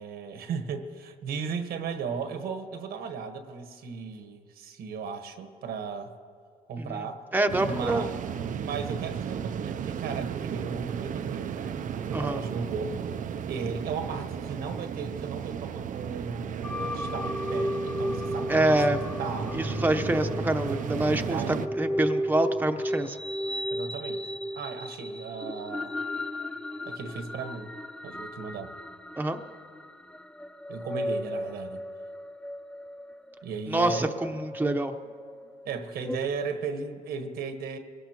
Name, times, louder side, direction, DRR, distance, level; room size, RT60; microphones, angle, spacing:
voice 1, 0.0-6.1 6.7-7.2 7.6-8.2 8.5-19.5 21.2-21.6 23.7-24.2 24.5-26.0 26.8-27.7 28.0-28.7 30.7-31.8 33.4-34.2 35.6-37.8, right 5 dB, 85° right, 6 dB, 1.3 m, -36 dB
voice 2, 7.3-8.1 12.1-12.4 18.5-19.0 19.5-23.2 29.2-29.4 33.7-34.9, right 1 dB, 10° right, 5 dB, 0.9 m, -26 dB
sound 1, 7.5-21.7, right 8 dB, 55° right, 0.5 m, -34 dB
sound 2, 16.6-36.2, equal, 5° left, 0.4 m, -35 dB
23.5 x 18.0 x 3.0 m, 2.1 s
cardioid pair, 90°, 16 cm